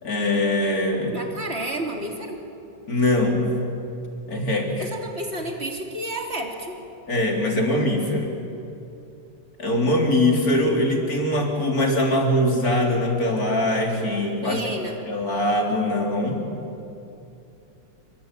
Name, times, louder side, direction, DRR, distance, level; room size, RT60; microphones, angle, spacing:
voice 1, 0.0-1.2 2.9-3.5 4.3-4.9 7.1-8.3 9.6-14.6 15.1-16.4, left 1 dB, 55° left, 1 dB, 4.2 m, -22 dB
voice 2, 1.1-2.4 4.8-6.8 14.4-15.0, right 1 dB, 35° right, 2 dB, 3.4 m, -31 dB
27.5 x 23.5 x 9.2 m, 2.7 s
omnidirectional pair, 1.9 m